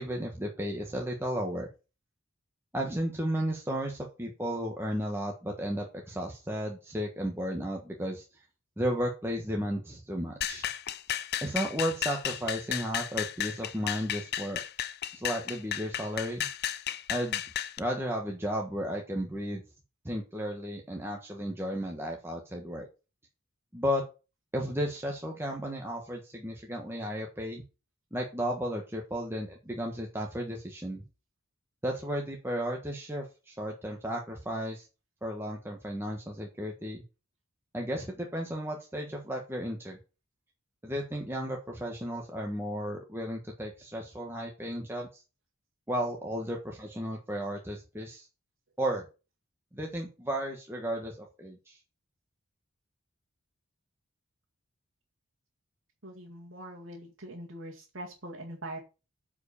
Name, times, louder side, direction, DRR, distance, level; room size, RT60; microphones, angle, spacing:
voice 1, 0.0-1.7 2.7-8.2 8.8-10.6 11.4-14.6 15.1-16.5 17.1-17.4 17.8-19.6 20.0-22.9 23.7-24.0 24.5-27.6 28.1-31.0 31.8-34.9 35.2-37.0 37.7-40.0 40.8-45.2 45.9-48.3 48.8-49.0 49.7-51.8, equal, 10° right, 0 dB, 1.3 m, -34 dB
sound 1, 10.4-17.8, left 10 dB, 50° left, 0.6 m, -34 dB
voice 2, 56.0-58.8, right 1 dB, 65° right, -3 dB, 2.2 m, -42 dB
9.2 x 5.0 x 6.9 m, 0.31 s
head